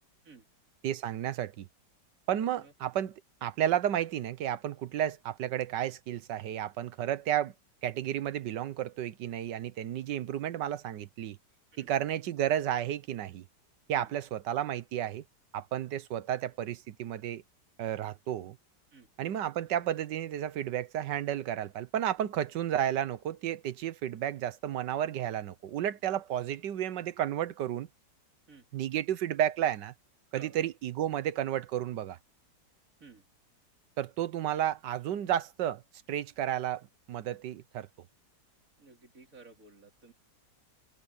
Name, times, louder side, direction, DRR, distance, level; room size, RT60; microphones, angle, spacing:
voice 1, 0.8-1.7 2.3-7.5 7.8-11.4 11.8-13.4 13.9-15.2 15.5-17.4 17.8-18.6 19.2-27.9 28.7-29.9 30.3-32.2 34.0-35.8 36.1-37.9, right 11 dB, 80° right, 1.5 m, -32 dB
voice 2, 30.3-30.6 33.0-33.2 38.8-40.1, right 4 dB, 50° right, 3.7 m, -54 dB
omnidirectional pair, 1.9 m